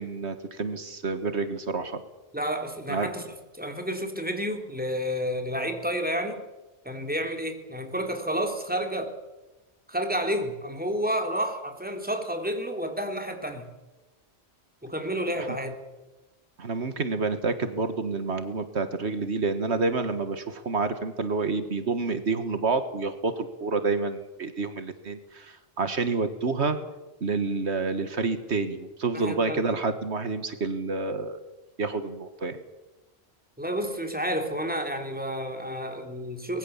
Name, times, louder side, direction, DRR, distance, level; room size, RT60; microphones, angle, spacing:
voice 1, 0.0-2.0 2.9-3.1 16.6-26.8 27.2-31.4 31.8-32.6, right 3 dB, 85° right, 9 dB, 1.9 m, -28 dB
voice 2, 2.3-3.2 3.6-6.4 6.8-9.1 9.9-13.7 14.8-15.7 29.1-29.6 33.6-36.6, equal, 10° right, 4 dB, 3.5 m, -30 dB
24.5 x 21.0 x 7.3 m, 1.1 s
omnidirectional pair, 1.1 m